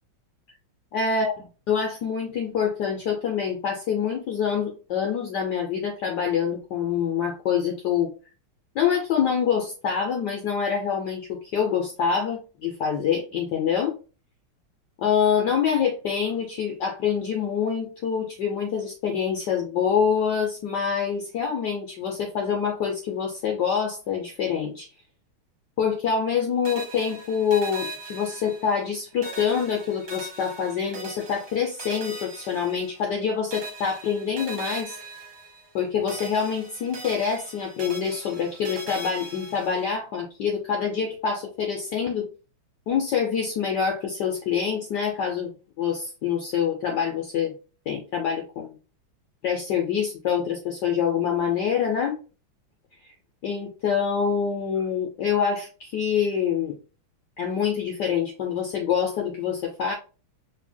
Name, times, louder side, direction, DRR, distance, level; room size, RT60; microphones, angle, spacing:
voice 1, 0.9-1.3 1.7-8.1 8.7-13.9 15.0-24.9 25.8-35.0 35.7-42.3 42.9-45.5 45.8-47.5 47.9-48.8 49.4-52.2 53.4-56.8 57.4-59.9, left 7 dB, 65° left, 2 dB, 1.1 m, -26 dB
sound 1, 26.6-28.9 29.2-33.2 33.5-35.8 36.1-39.9, right 2 dB, 50° right, 1.6 m, -40 dB
5.3 x 2.8 x 2.2 m, 0.33 s
omnidirectional pair, 2.3 m